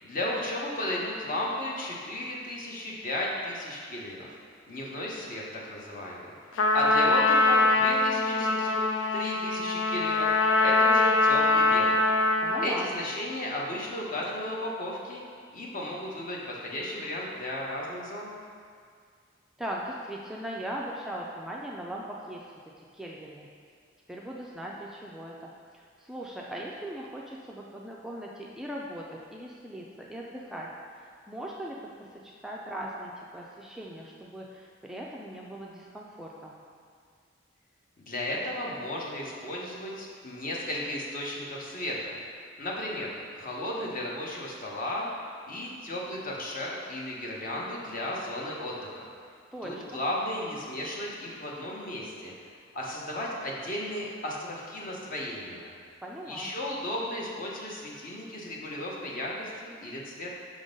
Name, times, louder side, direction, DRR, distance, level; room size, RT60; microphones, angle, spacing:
voice 1, 0.0-4.3 4.7-6.3 6.7-8.8 9.1-10.3 10.6-12.0 12.6-15.2 15.5-18.3 38.0-42.2 42.6-45.1 45.5-49.1 49.6-52.3 52.7-55.7 56.3-60.3, left 1 dB, 45° left, -3 dB, 1.1 m, -34 dB
Trumpet, 6.6-12.8, left 2 dB, 85° left, 0.4 m, -23 dB
voice 2, 12.4-12.9 19.6-22.4 22.8-23.5 24.1-30.7 31.0-36.6 49.5-50.0 56.0-56.5, right 1 dB, ahead, -3 dB, 0.4 m, -39 dB
6.1 x 3.8 x 5.2 m, 2.1 s
head